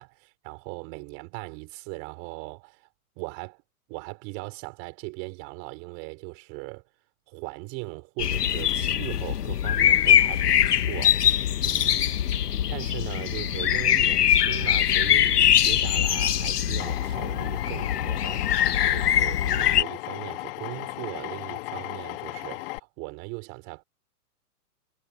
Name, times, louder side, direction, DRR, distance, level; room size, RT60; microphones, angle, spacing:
voice 1, 0.0-2.9 3.1-3.6 3.9-6.8 7.3-11.3 11.6-12.1 12.7-23.8, right 31 dB, 30° right, 4.9 m, -39 dB
sound 1, 8.2-19.8, left 10 dB, 80° left, 1.3 m, -23 dB
Drill, 16.8-22.8, left 21 dB, 35° left, 2.4 m, -36 dB
hypercardioid pair, 150°, 46 cm